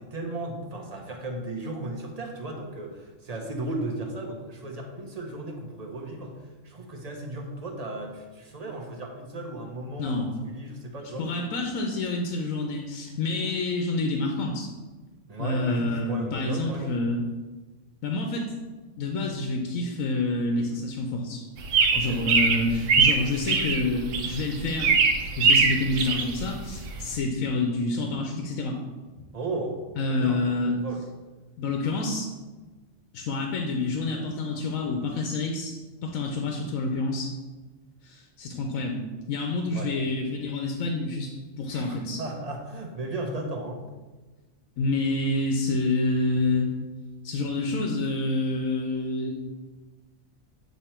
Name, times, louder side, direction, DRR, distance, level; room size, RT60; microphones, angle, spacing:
voice 1, 0.0-6.3 6.6-11.3 15.3-16.9 21.9-22.2 29.3-30.4 30.8-31.0 39.7-39.9 41.7-43.8, right 2 dB, 35° right, 1 dB, 0.8 m, -35 dB
voice 2, 10.0-10.3 11.2-14.7 15.4-17.2 18.0-18.5 19.0-21.4 21.9-25.0 25.4-28.8 30.0-30.8 31.6-32.3 33.1-37.3 38.0-41.3 41.6-42.2 44.8-46.7 47.2-49.4, left 2 dB, 85° left, 2 dB, 1.1 m, -28 dB
sound 1, 21.6-27.2, right 5 dB, 70° right, 0.9 m, -23 dB
8.3 x 3.0 x 4.4 m, 1.2 s
omnidirectional pair, 1.4 m